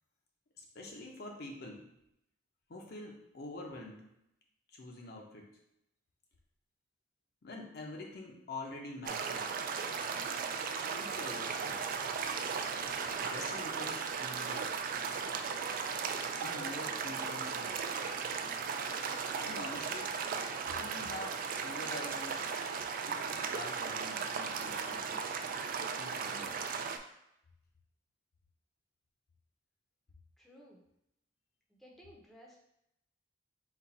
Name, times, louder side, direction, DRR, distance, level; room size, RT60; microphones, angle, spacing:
voice 1, 0.6-1.8 2.7-4.1 4.7-5.5 7.4-9.5 10.7-11.8 13.2-14.7 16.4-17.7 19.4-20.1 20.6-22.5 23.2-25.2 26.0-26.6, left 2 dB, 60° left, 0 dB, 0.7 m, -46 dB
sound 1, 9.0-27.0, right 6 dB, 50° right, 0.3 m, -36 dB
voice 2, 30.4-30.9 31.7-32.6, equal, ahead, -3 dB, 0.7 m, -57 dB
4.2 x 2.3 x 4.1 m, 0.79 s
head